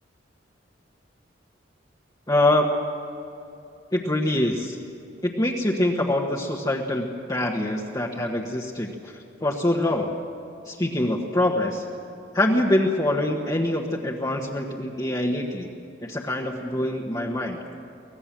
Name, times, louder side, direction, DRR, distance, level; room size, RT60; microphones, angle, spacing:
voice 1, 2.3-2.7 3.9-4.8 5.2-8.9 9.4-10.1 10.6-11.8 12.3-15.7 16.0-17.6, left 1 dB, 20° left, -2 dB, 1.2 m, -24 dB
24.0 x 18.0 x 7.3 m, 2.8 s
head